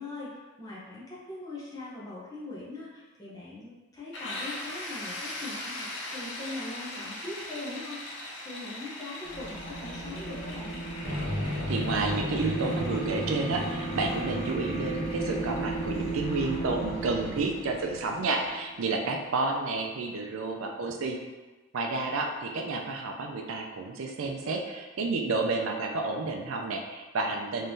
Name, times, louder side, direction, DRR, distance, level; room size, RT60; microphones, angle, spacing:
voice 1, 0.0-10.8, left 2 dB, 15° left, -8 dB, 0.8 m, -41 dB
sound 1, 4.1-19.7, left 1 dB, 60° left, 0.7 m, -42 dB
sound 2, 9.3-19.2, right 2 dB, 40° left, 1.1 m, -36 dB
sound 3, 11.0-18.1, left 1 dB, 40° right, 1.2 m, -37 dB
voice 2, 11.7-21.2 21.7-27.7, right 3 dB, 85° right, 2 dB, 0.5 m, -30 dB
3.6 x 3.1 x 2.7 m, 1.2 s
head